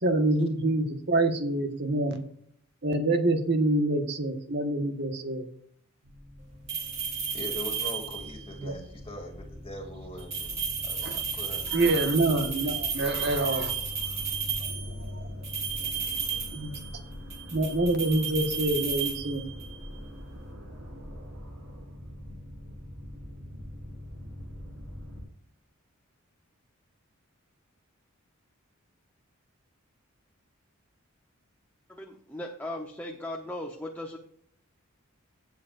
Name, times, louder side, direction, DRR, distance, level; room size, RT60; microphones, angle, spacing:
voice 1, 0.0-2.2 2.8-5.5 8.6-8.7 11.0-11.2 11.7-13.7 14.6-15.5 16.5-16.8 17.5-19.4, right 2 dB, 50° right, 6 dB, 1.4 m, -26 dB
sound 1, 6.0-25.2, left 1 dB, 70° right, 4.4 m, -43 dB
sound 2, 6.7-8.4 10.2-14.9 15.4-17.0 17.3-19.8, right 6 dB, 30° right, 2.7 m, -33 dB
voice 2, 7.3-11.8 12.1-13.6, equal, 25° left, 1 dB, 2.6 m, -43 dB
voice 3, 31.9-34.2, left 1 dB, 10° left, 0 dB, 0.9 m, -37 dB
16.5 x 7.7 x 2.5 m, 0.66 s
head